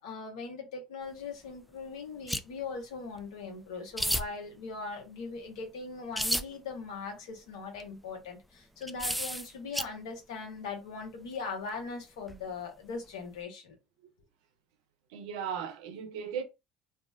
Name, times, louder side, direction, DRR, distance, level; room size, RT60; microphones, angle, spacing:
voice 1, 0.0-13.8, left 4 dB, 80° left, 0.8 m, -40 dB
sound 1, 2.3-2.4 3.2-3.3 4.0-4.3 6.2-6.4 7.8-7.9 8.8-9.8 12.3-12.4, equal, ahead, 0.3 m, -30 dB
voice 2, 15.1-16.4, right 7 dB, 80° right, 0.4 m, -36 dB
2.6 x 2.1 x 2.3 m
hypercardioid pair, 70°, 3 cm